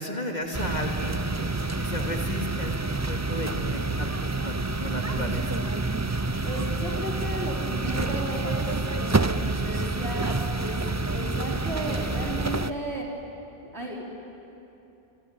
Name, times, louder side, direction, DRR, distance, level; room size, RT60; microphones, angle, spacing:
voice 1, 0.0-5.4, left 1 dB, 40° left, 2 dB, 2.6 m, -34 dB
sound 1, 0.5-12.7, right 3 dB, 20° right, 0.5 m, -28 dB
voice 2, 6.4-10.8 11.1-13.1 13.7-14.1, right 1 dB, 65° right, -2 dB, 4.6 m, -34 dB
27.0 x 22.5 x 9.5 m, 2.8 s
omnidirectional pair, 1.2 m